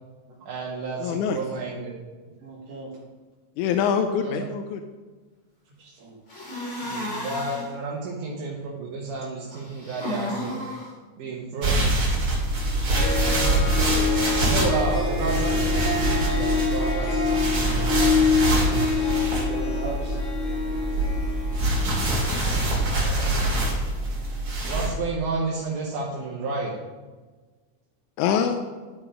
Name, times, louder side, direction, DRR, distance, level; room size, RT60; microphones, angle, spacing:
voice 1, 0.5-1.9 4.2-4.5 6.8-10.6 11.2-11.9 14.3-17.8 22.9-23.4 24.6-26.8, right 3 dB, 80° right, -3 dB, 2.6 m, -31 dB
voice 2, 1.0-1.4 3.6-4.8 22.2-22.5 28.2-28.6, left 7 dB, 85° left, 6 dB, 2.0 m, -25 dB
voice 3, 2.4-2.9 5.7-6.2 13.7-14.2 18.7-20.2, right 2 dB, 60° right, -6 dB, 2.4 m, -37 dB
sound 1, 6.3-7.7 9.5-10.9 16.8-17.5 18.3-19.3, left 1 dB, 25° left, 2.5 m, -35 dB
sound 2, 11.6-24.9, right 1 dB, 40° right, 2.9 m, -25 dB
Harp, 12.6-12.7 12.9-22.4, left 4 dB, 55° left, 3.2 m, -26 dB
11.5 x 4.8 x 5.1 m, 1.3 s
omnidirectional pair, 3.6 m